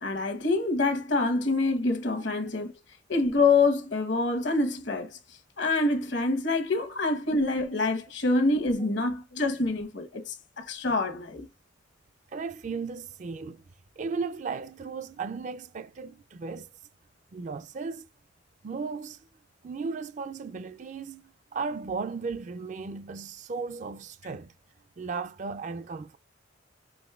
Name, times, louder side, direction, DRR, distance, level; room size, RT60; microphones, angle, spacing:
voice 1, 0.0-2.7 3.1-5.1 5.6-11.5, left 3 dB, 70° left, 1.0 m, -26 dB
voice 2, 12.3-13.6 14.0-16.7 17.3-18.1 18.6-19.2 19.6-24.5 25.0-26.2, right 4 dB, 40° right, 0.4 m, -36 dB
6.2 x 3.0 x 2.3 m
head